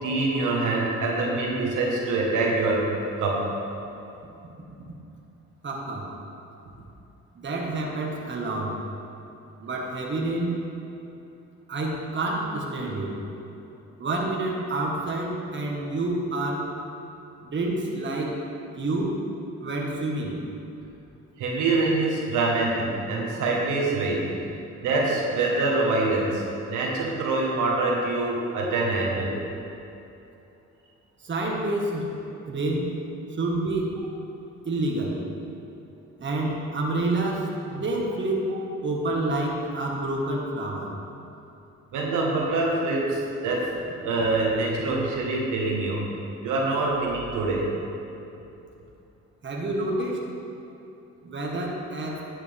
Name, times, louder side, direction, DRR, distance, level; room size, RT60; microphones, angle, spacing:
voice 1, 0.0-2.9 3.2-3.5 21.4-24.3 24.8-29.4 41.9-43.7 44.0-46.1 46.4-47.7, right 2 dB, 85° right, -2 dB, 1.6 m, -25 dB
voice 2, 5.6-6.1 7.3-8.8 9.6-10.6 11.7-13.2 14.0-16.7 17.4-18.4 18.7-19.2 19.6-20.4 31.2-32.1 32.5-33.0 33.3-34.0 34.6-35.2 36.2-40.9 49.4-50.2 51.2-52.2, right 2 dB, 40° right, -1 dB, 1.7 m, -28 dB
11.0 x 8.4 x 3.6 m, 2.8 s
cardioid pair, 90°, 30 cm